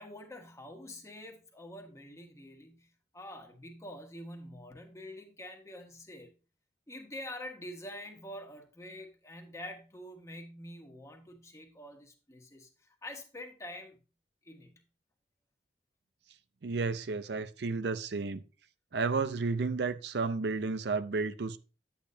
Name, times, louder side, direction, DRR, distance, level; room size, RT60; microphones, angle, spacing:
voice 1, 0.0-6.3 6.9-14.0 14.4-14.8, left 1 dB, 15° left, 1.5 m, -46 dB
voice 2, 16.6-18.4 18.9-21.6, right 4 dB, 70° right, 0.6 m, -32 dB
10.0 x 8.5 x 2.7 m
head